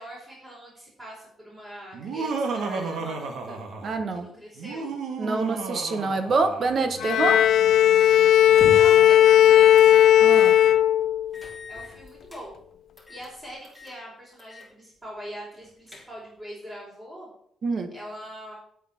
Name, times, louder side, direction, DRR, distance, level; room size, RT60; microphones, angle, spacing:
voice 1, 0.0-3.6 4.1-5.0 8.3-10.1 11.7-12.6 13.1-17.3 17.9-18.5, equal, 15° right, 4.7 m, -42 dB
Laughter, 1.9-4.1 4.6-6.9, right 4 dB, 85° right, 1.9 m, -32 dB
voice 2, 3.8-4.3 5.2-7.4 10.2-10.6 17.6-17.9, right 3 dB, 45° right, 1.4 m, -26 dB
Bowed string instrument, 7.0-11.4, left 11 dB, 75° left, 0.5 m, -16 dB
sound 1, 8.4-9.1 9.7-10.0 10.4-10.5 11.3-12.4 13.0-13.3 13.6-14.0 14.4-14.7 15.0-15.1 15.6-16.4, left 2 dB, 5° left, 3.3 m, -40 dB
9.2 x 8.2 x 5.9 m
cardioid pair, 125°, 0 cm